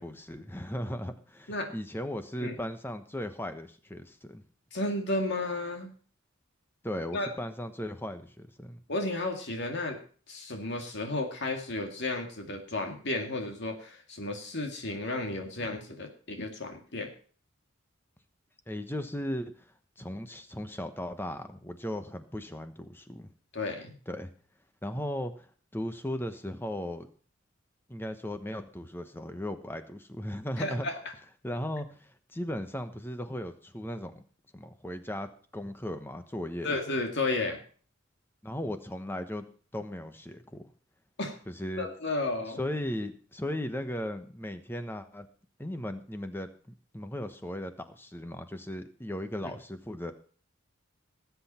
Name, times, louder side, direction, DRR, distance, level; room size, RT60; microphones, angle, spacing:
voice 1, 0.0-4.4 6.8-8.8 18.7-19.5 20.0-23.3 24.1-24.3 24.8-25.5 25.7-27.1 27.9-30.9 31.4-34.2 34.5-35.3 35.5-36.7 38.4-39.5 39.7-40.7 41.5-41.9 42.6-45.3 45.6-50.1, left 1 dB, 10° left, 9 dB, 1.1 m, -37 dB
voice 2, 4.7-5.9 7.1-7.3 8.9-10.0 10.3-17.1 23.5-24.0 30.6-30.9 36.6-37.6 41.2-41.4 41.8-42.6, left 2 dB, 55° left, 3 dB, 2.2 m, -33 dB
19.5 x 8.2 x 4.4 m, 0.42 s
head